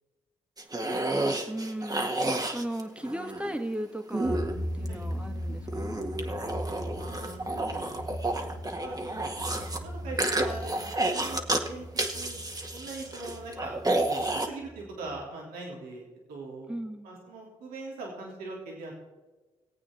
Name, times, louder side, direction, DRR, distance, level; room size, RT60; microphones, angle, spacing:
sound 1, 0.6-3.6 4.1-5.1 5.7-9.8 10.2-11.7 12.0-14.5, right 2 dB, 25° right, 1.9 m, -30 dB
voice 1, 1.5-4.4 4.8-6.1 16.7-17.1, right 1 dB, 10° right, 6 dB, 2.0 m, -36 dB
sound 2, 4.2-15.2, equal, 55° left, 2.0 m, -39 dB
voice 2, 7.0-8.0 8.8-9.2 9.7-11.9 12.1-13.8 14.0-16.7 17.0-18.9, right 3 dB, 85° right, -2 dB, 3.2 m, -42 dB
19.0 x 8.6 x 4.5 m, 1.2 s
hypercardioid pair, 45°, 15 cm